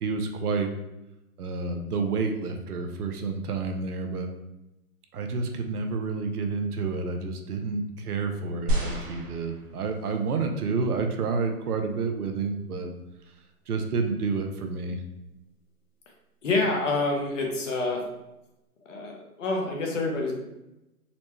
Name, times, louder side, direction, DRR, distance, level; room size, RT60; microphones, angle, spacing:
voice 1, 0.0-0.7 1.4-4.3 5.1-12.9 13.7-15.0, right 4 dB, 75° right, 5 dB, 0.7 m, -29 dB
sound 1, 8.7-10.2 10.9-11.0, right 1 dB, 35° right, 0.7 m, -30 dB
voice 2, 16.4-18.0 18.9-19.1 19.4-20.3, left 2 dB, 55° left, 1 dB, 0.9 m, -27 dB
4.1 x 2.1 x 3.0 m, 0.92 s
hypercardioid pair, 150°, 46 cm